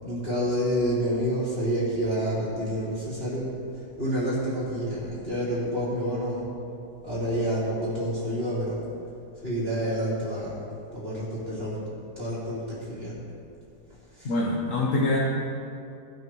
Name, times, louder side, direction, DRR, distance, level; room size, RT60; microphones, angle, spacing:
voice 1, 0.0-3.5 4.0-6.5 7.0-8.9 9.4-10.7 10.9-13.2 14.1-14.4, equal, 35° right, -13 dB, 3.9 m, -28 dB
voice 2, 14.2-15.2, left 2 dB, 50° left, -3 dB, 1.6 m, -24 dB
19.0 x 7.3 x 4.7 m, 2.6 s
omnidirectional pair, 1.8 m